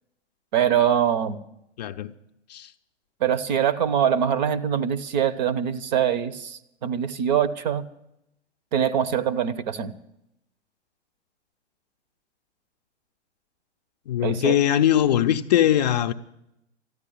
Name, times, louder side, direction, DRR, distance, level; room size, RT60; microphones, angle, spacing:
voice 1, 0.5-1.4 3.2-7.9 8.7-9.9 14.2-14.6, right 9 dB, 40° right, 0.8 m, -23 dB
voice 2, 1.8-2.1 2.5-2.7 14.1-16.1, left 11 dB, 35° left, 0.6 m, -21 dB
13.5 x 9.8 x 9.1 m
figure-of-eight pair, 115°, 36 cm